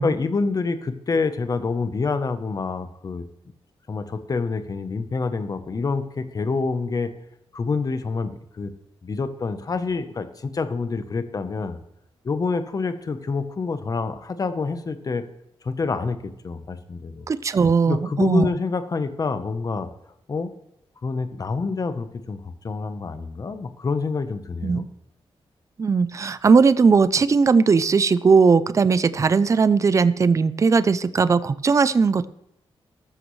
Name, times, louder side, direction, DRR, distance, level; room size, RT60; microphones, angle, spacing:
voice 1, 0.0-3.2 3.9-7.1 7.5-8.7 9.0-11.8 12.2-15.2 15.6-17.2 17.9-19.9 20.3-20.5 21.0-24.9, left 4 dB, 40° left, 10 dB, 0.9 m, -27 dB
voice 2, 17.3-18.5 24.6-24.8 25.8-32.3, right 5 dB, 30° right, 15 dB, 0.4 m, -18 dB
14.0 x 12.5 x 3.2 m, 0.81 s
wide cardioid pair, 145°, 10 cm